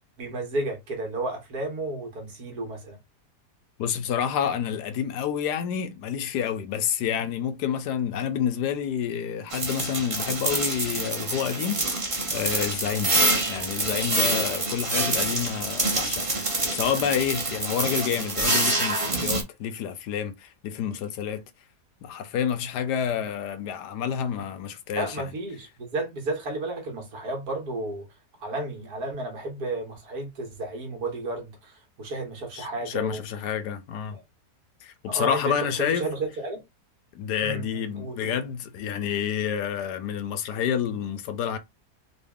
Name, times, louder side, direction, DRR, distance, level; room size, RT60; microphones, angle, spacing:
voice 1, 0.2-3.0 24.9-28.1 28.4-33.2 34.1-34.2 35.1-36.6 37.4-38.4, right 2 dB, 70° right, 1.7 m, -32 dB
voice 2, 3.8-21.4 22.0-25.3 32.5-34.2 34.8-36.1 37.1-41.6, left 8 dB, 80° left, 1.3 m, -29 dB
sound 1, 9.5-19.4, right 2 dB, 25° right, 0.8 m, -26 dB
3.9 x 2.3 x 3.5 m
omnidirectional pair, 1.8 m